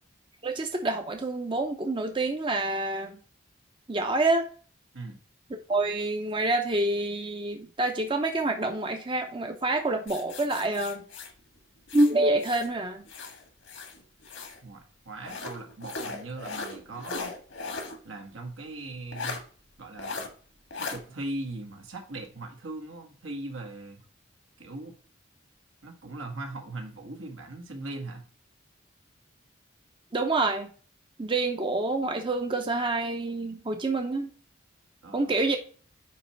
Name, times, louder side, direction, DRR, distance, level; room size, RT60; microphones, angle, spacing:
voice 1, 0.4-3.2 3.9-4.5 5.7-11.0 11.9-13.0 30.1-30.7 31.2-34.3 35.1-35.6, right 2 dB, 25° right, 5 dB, 0.6 m, -27 dB
sound 1, 10.1-12.7 13.1-14.6 15.2-18.0 18.3-18.4 19.1-19.4 20.0-20.3 20.7-21.0, left 4 dB, 75° left, 1.5 m, -38 dB
voice 2, 14.6-17.3 18.0-19.4 19.8-20.3 20.8-24.0 24.6-24.9 25.8-28.3 35.0-35.3, right 2 dB, 80° right, 2 dB, 1.7 m, -39 dB
9.4 x 3.2 x 4.4 m, 0.42 s
head